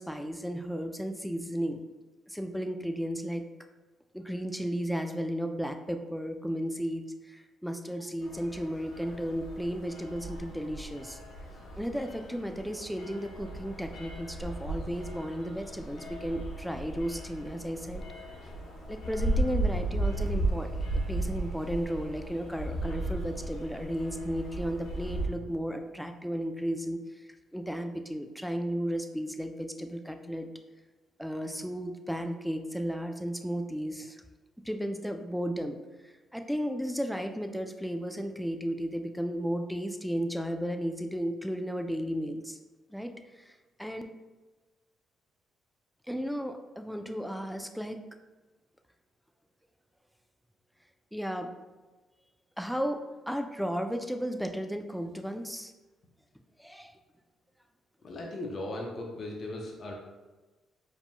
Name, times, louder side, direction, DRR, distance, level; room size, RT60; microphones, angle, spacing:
voice 1, 0.0-1.8 2.3-3.4 4.1-11.2 11.8-18.0 18.9-27.0 27.5-30.5 31.2-34.2 34.6-35.8 36.0-42.6 42.9-43.5 43.8-44.0 46.1-48.0 51.1-51.5 52.6-55.7 56.6-56.9, equal, ahead, 6 dB, 0.4 m, -34 dB
sound 1, 8.2-25.3, right 1 dB, 75° left, 0.9 m, -35 dB
voice 2, 58.0-59.9, left 1 dB, 45° left, -1 dB, 0.7 m, -37 dB
4.7 x 3.6 x 2.2 m, 1.2 s
cardioid pair, 90°, 0 cm